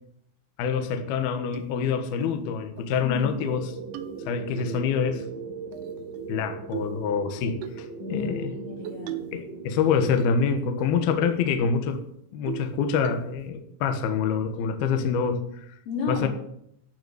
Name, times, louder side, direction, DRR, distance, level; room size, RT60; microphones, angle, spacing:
voice 1, 0.6-3.8 4.3-5.3 6.3-8.6 9.3-12.0 12.3-15.7 16.1-16.3, left 6 dB, 65° left, 6 dB, 2.7 m, -26 dB
sound 1, 1.5-1.6 2.2-2.4 2.8-2.9 3.2-3.6 3.9-4.7 5.7-6.4 6.7-7.0 7.6-7.8 8.9-9.4 9.8-10.4 10.8-10.9 11.2-11.5 11.9-12.0 12.5-12.8 13.1-13.5, right 12 dB, 80° right, 3.0 m, -38 dB
sound 2, 3.5-10.3, right 4 dB, 60° right, 5.3 m, -39 dB
voice 2, 8.0-9.2 15.9-16.3, left 4 dB, 90° left, -2 dB, 6.0 m, -32 dB
13.5 x 5.9 x 9.4 m, 0.74 s
omnidirectional pair, 5.5 m